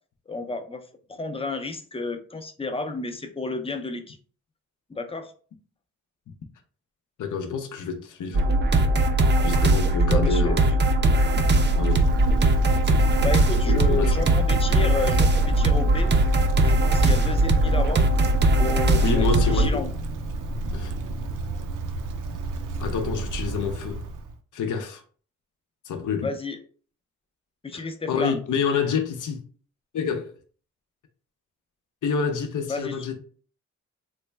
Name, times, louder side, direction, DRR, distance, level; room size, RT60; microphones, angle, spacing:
voice 1, 0.3-0.8 1.1-4.2 4.9-5.3 10.1-10.6 13.2-16.1 16.6-18.1 18.6-19.9 26.2-26.6 27.6-28.4 32.7-33.0, left 3 dB, 20° left, 0.4 m, -31 dB
voice 2, 7.2-8.5 9.4-10.6 11.4-12.1 13.6-14.1 19.0-19.8 20.7-20.9 22.8-24.0 24.5-25.0 25.9-26.3 27.7-29.4 29.9-30.3 32.0-33.2, left 6 dB, 75° left, 0.6 m, -28 dB
sound 1, 8.3-19.7, right 1 dB, 35° right, 0.4 m, -20 dB
Wind, 11.5-24.4, right 2 dB, 90° right, 0.5 m, -32 dB
3.2 x 2.1 x 3.2 m
wide cardioid pair, 80°, 31 cm